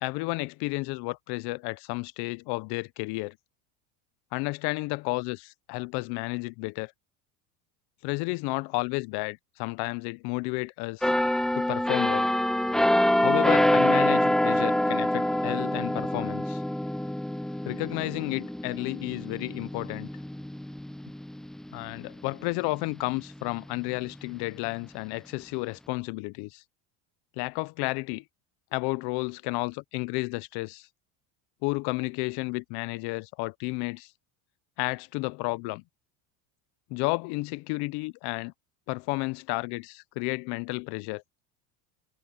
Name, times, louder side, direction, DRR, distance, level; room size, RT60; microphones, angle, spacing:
voice 1, 0.0-3.4 4.3-6.9 8.0-11.1 11.5-12.3 13.2-16.6 17.7-20.1 21.7-26.6 27.4-28.2 28.7-30.9 31.6-34.1 34.8-35.8 36.9-38.5 38.9-41.2, left 25 dB, 60° left, 0.7 m, -32 dB
sound 1, 11.0-22.6 23.0-23.2, left 1 dB, ahead, 0.3 m, -26 dB
supercardioid pair, 125°, 45 cm